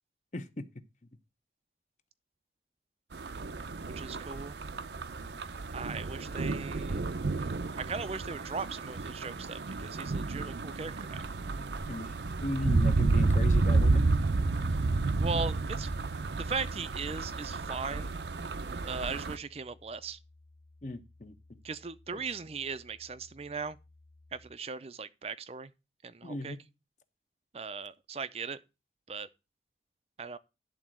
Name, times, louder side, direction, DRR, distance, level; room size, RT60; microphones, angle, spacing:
sound 1, 3.1-19.4, right 3 dB, 75° right, 0.6 m, -31 dB
voice 1, 3.9-4.6 5.7-7.0 7.8-11.2 15.2-16.0 16.4-18.1 18.8-20.2 21.6-23.8 24.3-25.7 26.0-26.6 27.5-28.6 29.1-29.3 30.2-30.4, right 4 dB, 35° right, 0.5 m, -38 dB
sound 2, 4.9-24.5, left 2 dB, 5° left, 1.0 m, -59 dB
voice 2, 12.4-14.1 20.8-21.3 22.1-22.2 26.2-26.6, left 1 dB, 45° left, 0.9 m, -36 dB
10.5 x 3.9 x 7.4 m
head